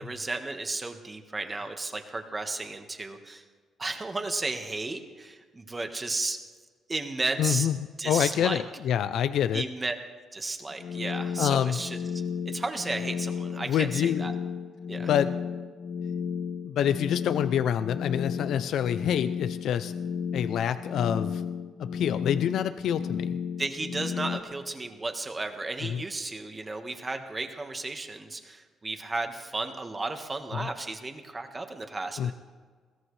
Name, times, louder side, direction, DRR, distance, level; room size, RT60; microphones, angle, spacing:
voice 1, 0.0-3.4 3.8-6.4 6.9-7.7 8.0-8.6 9.5-9.9 10.3-12.0 12.4-14.3 14.9-15.1 23.6-32.3, right 3 dB, 20° right, 5 dB, 1.4 m, -34 dB
voice 2, 7.4-7.7 8.1-9.6 11.4-11.8 13.6-14.2 15.1-15.3 16.6-19.9 20.3-21.4 21.8-23.4 25.8-26.0 30.5-30.7 32.2-32.3, left 9 dB, 70° left, 12 dB, 0.4 m, -26 dB
sound 1, 10.7-24.4, left 7 dB, 50° left, 0.8 m, -33 dB
21.0 x 16.5 x 3.3 m, 1.6 s
cardioid pair, 125°, 0 cm